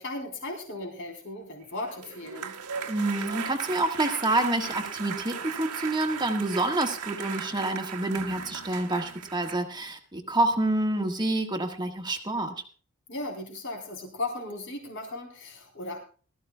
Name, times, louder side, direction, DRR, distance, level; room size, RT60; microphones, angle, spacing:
voice 1, 0.0-2.6 13.1-16.0, left 2 dB, 55° left, 2 dB, 3.9 m, -36 dB
sound 1, 1.7-9.6, right 7 dB, 90° right, 1.7 m, -37 dB
voice 2, 2.9-12.5, right 2 dB, 20° right, 5 dB, 1.5 m, -28 dB
21.0 x 13.5 x 2.3 m, 0.39 s
head